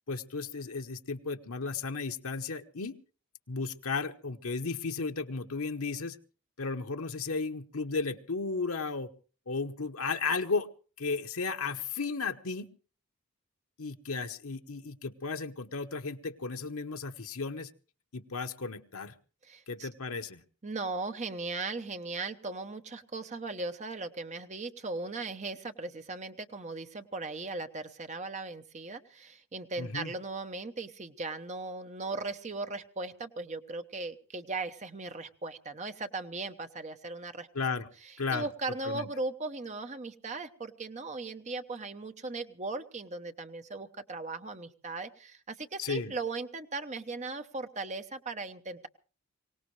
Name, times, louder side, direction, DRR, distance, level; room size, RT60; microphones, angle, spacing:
voice 1, 0.1-3.0 3.5-6.2 6.6-9.1 9.5-10.7 11.0-12.7 13.8-17.7 18.1-19.1 19.7-20.4 29.8-30.1 37.5-37.9 38.2-38.5 38.8-39.1 45.8-46.1, left 4 dB, 70° left, 6 dB, 1.0 m, -34 dB
voice 2, 19.4-19.9 20.6-37.5 38.0-48.9, right 3 dB, 30° right, 8 dB, 0.8 m, -38 dB
23.5 x 18.0 x 3.2 m, 0.38 s
head